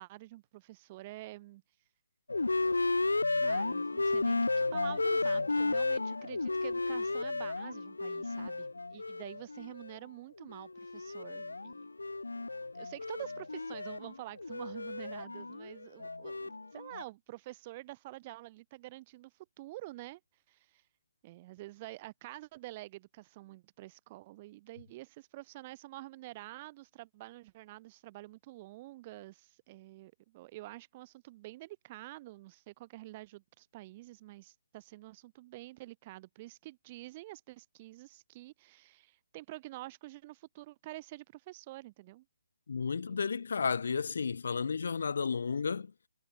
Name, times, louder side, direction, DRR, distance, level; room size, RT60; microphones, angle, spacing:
voice 1, 0.0-1.6 3.4-4.4 4.7-11.9 12.7-19.3 19.6-20.2 20.5-20.8 21.2-42.2 42.8-43.2, right 18 dB, 30° right, 2.8 m, -48 dB
sound 1, 2.3-10.0 10.4-17.0, left 3 dB, 85° left, 1.5 m, -33 dB
voice 2, 42.7-45.9, left 5 dB, 65° left, 0.8 m, -32 dB
figure-of-eight pair, 145°, 0 cm